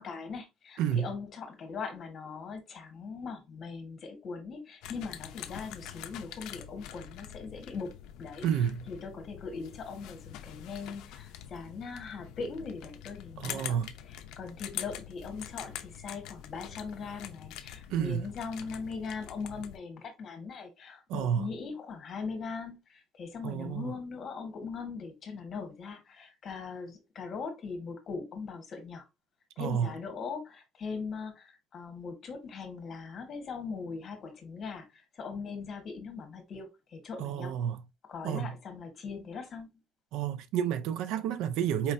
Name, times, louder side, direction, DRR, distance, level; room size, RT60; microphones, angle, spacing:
voice 1, 0.0-13.8 14.0-29.1 29.6-37.5 38.1-39.7, left 5 dB, 40° left, 1.3 m, -40 dB
voice 2, 0.8-1.1 8.4-8.9 13.4-13.9 17.9-18.3 21.1-21.5 23.4-23.9 29.6-29.9 37.2-37.8 38.2-38.5 40.1-41.9, right 9 dB, 75° right, 0.4 m, -30 dB
sound 1, 4.8-19.8, left 10 dB, 80° left, 0.5 m, -45 dB
4.5 x 3.2 x 2.6 m
cardioid pair, 150°, 0 cm